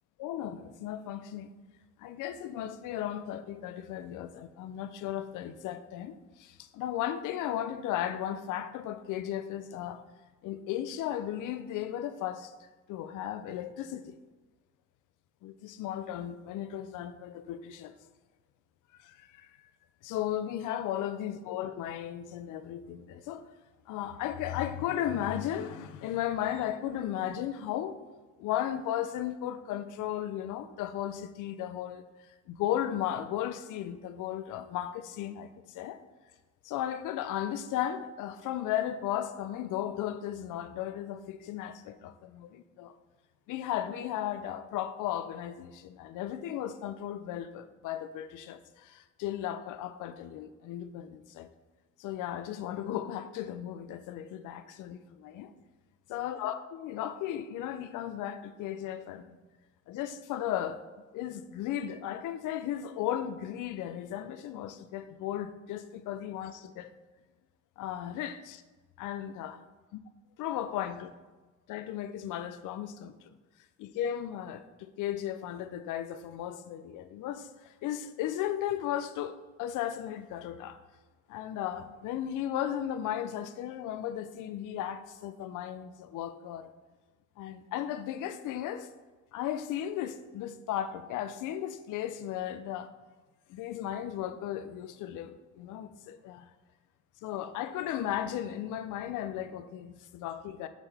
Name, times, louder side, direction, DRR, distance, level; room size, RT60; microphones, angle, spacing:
voice 1, 0.2-1.5 2.0-10.0 10.4-12.5 12.9-14.2 15.4-17.9 19.0-19.5 20.0-23.4 23.9-28.0 28.4-32.0 32.5-36.0 36.6-43.0 43.5-51.5 52.0-55.5 56.1-59.4 59.9-60.8 61.1-66.9 67.8-68.6 69.0-69.6 70.4-71.1 71.7-73.3 73.8-80.8 81.3-86.7 87.4-88.9 89.3-92.9 93.5-96.5 97.2-100.7, left 11 dB, 85° left, 0.5 m, -35 dB
7.2 x 5.6 x 3.4 m
cardioid pair, 90°, 30 cm